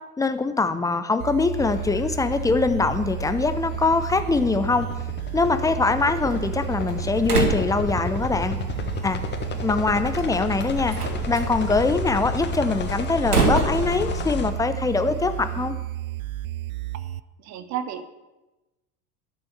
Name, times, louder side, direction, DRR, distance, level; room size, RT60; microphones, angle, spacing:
voice 1, 0.2-4.9 5.3-8.6 9.0-9.2 9.6-11.0 11.3-15.8, left 3 dB, 10° left, 10 dB, 0.6 m, -23 dB
sound 1, 1.2-17.2, right 15 dB, 65° right, 0.5 m, -32 dB
sound 2, 1.5-14.5, left 6 dB, 25° left, 1.2 m, -33 dB
Slam, 6.2-15.7, right 3 dB, 80° right, 1.7 m, -30 dB
voice 2, 17.4-18.1, right 9 dB, 35° right, 11 dB, 1.1 m, -31 dB
12.0 x 7.1 x 6.9 m, 1.1 s
figure-of-eight pair, 75°, 45 cm